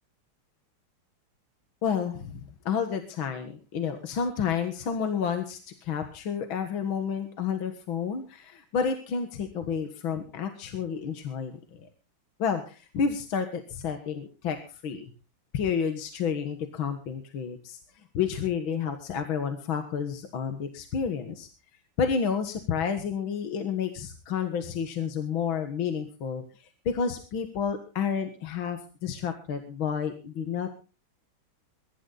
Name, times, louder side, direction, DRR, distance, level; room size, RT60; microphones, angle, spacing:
voice 1, 1.8-2.4 2.7-11.9 12.4-15.1 15.5-17.8 18.1-21.5 22.0-30.7, left 7 dB, 65° left, 7 dB, 2.3 m, -30 dB
21.5 x 12.5 x 4.0 m, 0.34 s
omnidirectional pair, 2.4 m